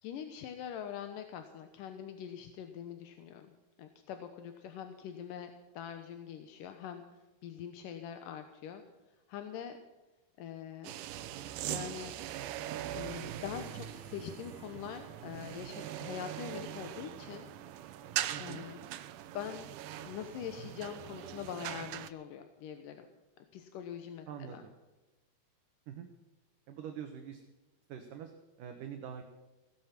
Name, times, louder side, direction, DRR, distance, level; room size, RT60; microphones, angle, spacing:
voice 1, 0.0-3.5 3.8-7.0 7.4-8.8 9.3-9.8 10.4-10.9 11.7-12.1 12.9-17.5 18.4-18.8 19.3-19.7 20.0-23.1 23.5-24.6, left 9 dB, 70° left, 7 dB, 2.3 m, -43 dB
sound 1, 10.8-22.1, right 12 dB, 85° right, 1.9 m, -41 dB
Bowed string instrument, 12.8-18.4, left 5 dB, 35° left, 1.8 m, -62 dB
voice 2, 18.3-18.7 24.3-24.7 25.9-26.1 26.7-27.4 27.9-28.3 28.6-29.2, right 8 dB, 65° right, 5 dB, 2.5 m, -44 dB
17.5 x 12.5 x 5.9 m, 1.1 s
omnidirectional pair, 4.7 m